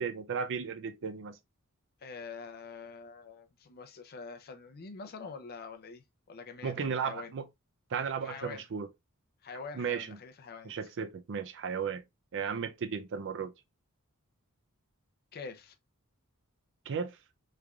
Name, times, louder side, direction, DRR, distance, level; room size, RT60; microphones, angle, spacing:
voice 1, 0.0-1.4 6.6-7.4 7.9-8.9 9.7-10.2 10.7-12.0 12.3-13.5 16.9-17.2, right 6 dB, 55° right, 0.4 m, -35 dB
voice 2, 2.0-7.3 8.2-8.6 9.4-10.7 15.3-15.8, left 5 dB, 45° left, 0.5 m, -45 dB
3.5 x 3.2 x 2.3 m
head